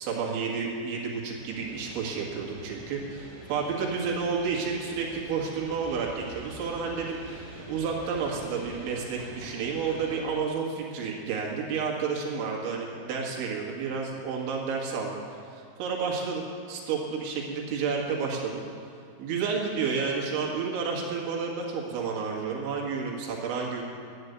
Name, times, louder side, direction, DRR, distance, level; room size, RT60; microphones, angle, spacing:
voice 1, 0.0-18.6 19.2-23.8, right 5 dB, 75° right, -2 dB, 4.1 m, -31 dB
sound 1, 1.4-10.2, right 1 dB, 25° right, 3.1 m, -45 dB
12.0 x 9.5 x 8.0 m, 2.2 s
omnidirectional pair, 5.5 m